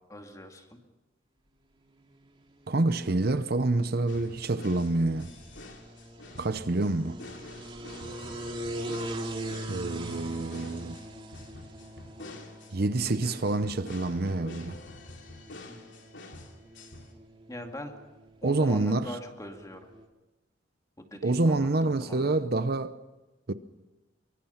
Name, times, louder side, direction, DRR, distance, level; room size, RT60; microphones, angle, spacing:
voice 1, 0.1-0.8 15.7-15.8 17.5-17.9 18.4-19.9 21.0-22.3, left 1 dB, 20° left, 2.4 m, -42 dB
sound 1, 2.0-20.1, right 1 dB, 30° right, 2.5 m, -43 dB
voice 2, 2.7-5.3 6.4-7.2 9.7-11.0 12.7-14.8 18.4-19.1 21.2-22.9 23.5-23.6, right 2 dB, 55° right, 0.8 m, -27 dB
sound 2, 4.1-17.1, left 2 dB, 85° left, 2.9 m, -47 dB
24.0 x 23.5 x 5.8 m
head